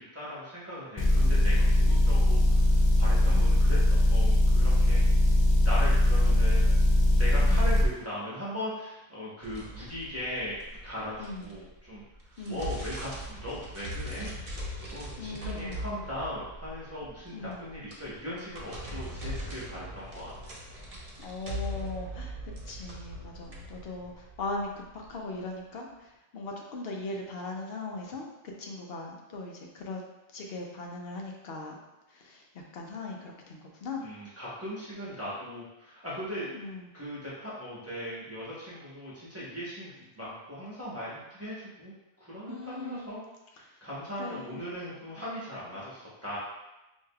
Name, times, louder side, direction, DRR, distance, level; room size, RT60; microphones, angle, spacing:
voice 1, 0.0-2.7 3.0-5.0 5.6-6.7 7.1-10.6 10.8-12.0 12.5-14.3 14.9-20.3 34.0-36.5 36.9-41.9 42.2-43.2 43.6-46.4, equal, 15° right, -10 dB, 1.0 m, -38 dB
Motor vehicle (road) / Engine, 1.0-7.9, left 1 dB, 50° left, 0.3 m, -21 dB
voice 2, 3.3-3.6 7.4-7.6 11.2-11.5 12.4-12.6 15.2-15.8 17.3-17.7 21.2-26.1 26.3-28.3 28.6-30.0 30.3-31.7 32.1-34.1 36.5-36.9 42.5-43.2 44.2-44.6, left 2 dB, 70° left, 0 dB, 0.9 m, -39 dB
sound 1, 9.4-11.8 12.1-25.1, equal, 40° right, 0.7 m, -40 dB
4.8 x 2.7 x 2.3 m, 0.96 s
omnidirectional pair, 1.0 m